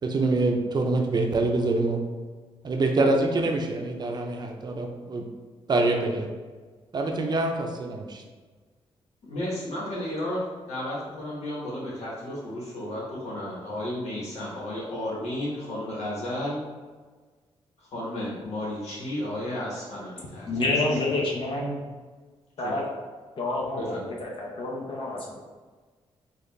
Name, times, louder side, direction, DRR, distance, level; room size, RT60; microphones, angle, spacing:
voice 1, 0.0-2.0 2.6-5.3 5.7-6.3 6.9-8.2, right 2 dB, 40° right, 3 dB, 0.5 m, -25 dB
voice 2, 9.2-16.6 17.8-20.7 22.6-22.8 23.8-24.0, left 1 dB, 85° left, -5 dB, 1.3 m, -33 dB
voice 3, 20.5-21.8 22.6-22.8 23.4-25.4, left 2 dB, 55° left, -3 dB, 0.8 m, -28 dB
4.0 x 2.4 x 3.3 m, 1.4 s
cardioid pair, 95°, 11 cm